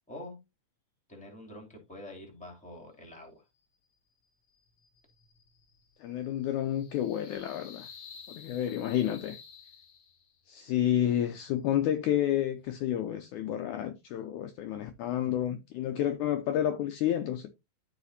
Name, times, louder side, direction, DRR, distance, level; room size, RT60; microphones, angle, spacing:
voice 1, 0.1-0.4 1.1-3.4, left 1 dB, ahead, 2.2 m, -46 dB
sound 1, 4.5-10.5, left 6 dB, 50° left, 1.5 m, -52 dB
voice 2, 6.0-7.9 8.4-9.4 10.5-17.5, left 11 dB, 75° left, 1.9 m, -30 dB
13.5 x 4.9 x 2.7 m
omnidirectional pair, 4.0 m